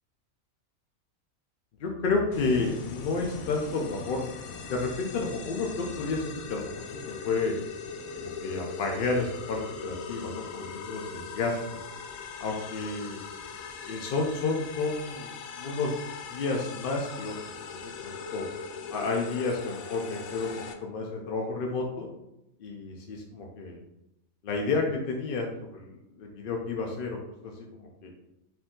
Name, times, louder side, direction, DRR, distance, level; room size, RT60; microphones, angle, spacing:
voice 1, 1.8-7.5 8.2-11.6 12.4-13.2 13.8-15.9 16.3-17.3 17.7-18.4 18.9-20.5 20.8-22.1 22.6-23.8 24.4-28.1, left 3 dB, 60° left, 0 dB, 0.6 m, -31 dB
sound 1, 2.3-20.7, left 5 dB, 75° left, 1.0 m, -40 dB
4.6 x 2.6 x 3.7 m, 0.87 s
omnidirectional pair, 1.5 m